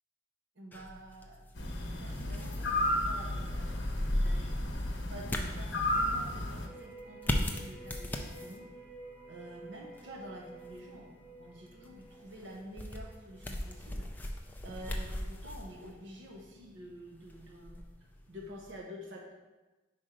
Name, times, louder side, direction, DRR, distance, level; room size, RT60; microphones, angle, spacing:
voice 1, 0.6-1.4 2.0-8.7 9.3-14.2 14.6-17.8 18.3-19.3, equal, 65° right, -1 dB, 0.9 m, -49 dB
sound 1, 0.7-18.8, left 1 dB, 10° left, 0.4 m, -39 dB
sound 2, 1.6-6.7, left 1 dB, 65° left, 0.8 m, -33 dB
sound 3, 6.7-14.4 14.8-14.9, right 1 dB, 15° right, 1.7 m, -52 dB
5.1 x 4.4 x 5.0 m, 1.2 s
head